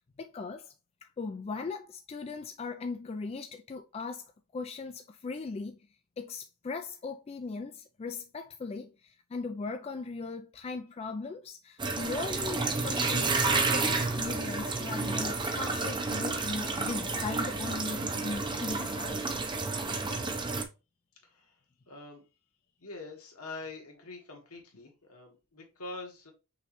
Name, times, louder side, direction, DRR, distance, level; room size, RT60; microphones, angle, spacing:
voice 1, 0.2-0.7 1.0-5.8 6.2-19.4, left 4 dB, 30° left, 0.3 m, -39 dB
sound 1, 11.8-20.6, right 3 dB, 20° right, 0.6 m, -30 dB
voice 2, 21.2-21.6 21.9-22.3 22.8-26.3, left 3 dB, 75° left, 1.6 m, -45 dB
5.7 x 3.1 x 2.9 m
head